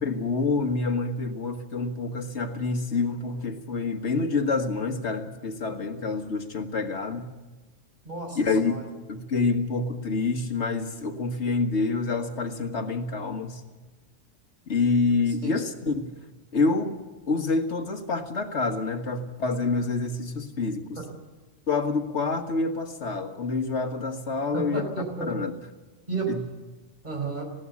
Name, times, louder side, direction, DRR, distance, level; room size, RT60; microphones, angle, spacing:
voice 1, 0.0-7.3 8.4-8.8 9.1-13.6 14.7-16.1 16.5-17.0 17.3-20.9 21.7-24.9 25.3-25.5 26.3-26.4, left 3 dB, 90° left, 5 dB, 1.8 m, -27 dB
voice 2, 8.0-8.9 15.3-15.5 20.9-21.1 24.5-25.3 26.1-26.3 27.0-27.4, right 4 dB, 40° right, 2 dB, 4.9 m, -32 dB
20.0 x 16.5 x 8.4 m, 1.2 s
omnidirectional pair, 1.1 m